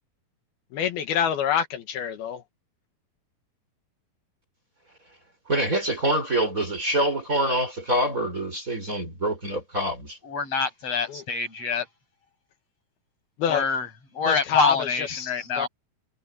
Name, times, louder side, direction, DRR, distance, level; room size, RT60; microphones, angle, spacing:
voice 1, 0.7-2.4 11.1-11.2 13.4-13.6 14.2-15.7, left 8 dB, 80° left, 3.5 m, -27 dB
voice 2, 5.5-10.2, right 1 dB, 20° right, 5.2 m, -25 dB
voice 3, 10.3-11.9 13.5-13.9 14.1-15.7, left 4 dB, 40° left, 8.3 m, -25 dB
omnidirectional pair, 4.4 m